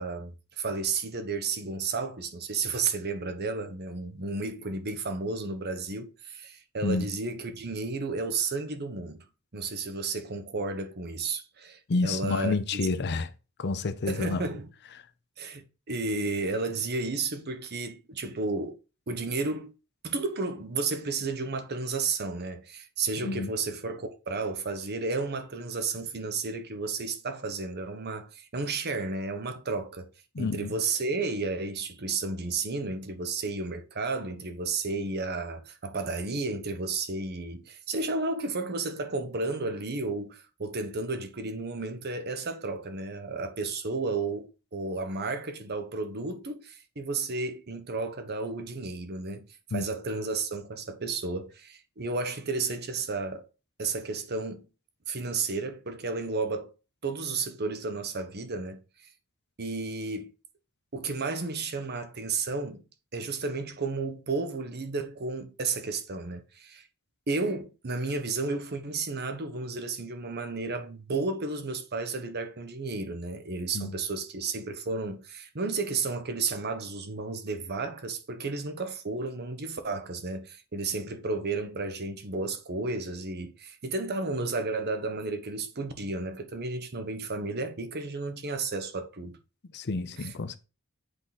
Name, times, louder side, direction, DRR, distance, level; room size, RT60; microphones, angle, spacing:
voice 1, 0.0-9.3 9.5-12.9 14.1-14.7 15.4-18.8 19.1-19.7 20.0-30.1 30.4-53.4 53.8-54.7 55.1-56.7 57.0-58.8 59.6-60.3 60.9-62.8 63.1-66.9 67.3-89.4 90.2-90.6, right 3 dB, 50° right, 1.0 m, -32 dB
voice 2, 11.9-13.3 13.6-14.5 23.2-23.5 30.3-30.7 49.7-49.8 73.7-74.0 89.7-90.6, left 3 dB, 50° left, 0.6 m, -29 dB
8.0 x 3.8 x 4.1 m
head